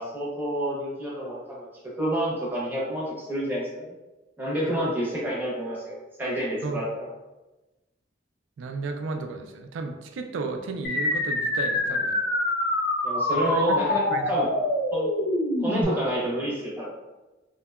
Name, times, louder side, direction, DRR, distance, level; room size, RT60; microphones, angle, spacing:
voice 1, 0.0-1.7 2.0-3.9 4.4-7.1 13.0-14.5 14.9-15.1 15.6-16.9, equal, 10° right, -6 dB, 0.7 m, -29 dB
voice 2, 8.6-12.1 13.4-13.8 14.1-14.3, right 4 dB, 85° right, 6 dB, 0.3 m, -34 dB
sound 1, 10.8-15.8, left 1 dB, 65° left, 0.5 m, -25 dB
2.7 x 2.2 x 2.2 m, 1.1 s
head